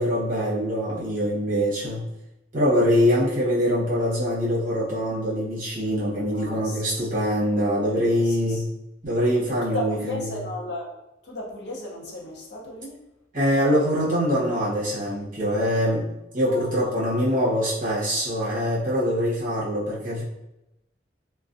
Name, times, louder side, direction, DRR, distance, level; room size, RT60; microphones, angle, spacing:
voice 1, 0.0-2.0 2.5-8.7 9.0-10.4 13.3-16.1 16.3-20.2, equal, 45° right, -7 dB, 0.9 m, -23 dB
voice 2, 6.3-7.6 8.2-8.6 9.5-11.0 11.2-13.0 16.5-17.1, left 1 dB, 65° left, -2 dB, 0.6 m, -36 dB
2.4 x 2.1 x 2.5 m, 0.91 s
head